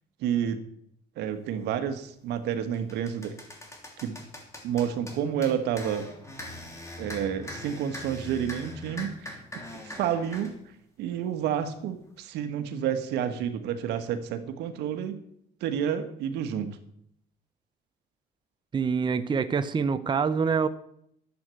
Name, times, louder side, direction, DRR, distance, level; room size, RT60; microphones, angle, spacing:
voice 1, 0.2-0.6 1.2-3.4 4.0-4.2 4.6-6.1 7.0-10.5 11.0-15.2 15.6-16.8, right 9 dB, 85° right, 9 dB, 1.5 m, -30 dB
sound 1, 1.7-1.9 2.4-10.6, left 1 dB, 15° left, 3.2 m, -42 dB
voice 2, 18.7-20.7, right 5 dB, 25° right, 11 dB, 0.7 m, -25 dB
11.5 x 8.2 x 7.7 m, 0.70 s
cardioid pair, 110°, 17 cm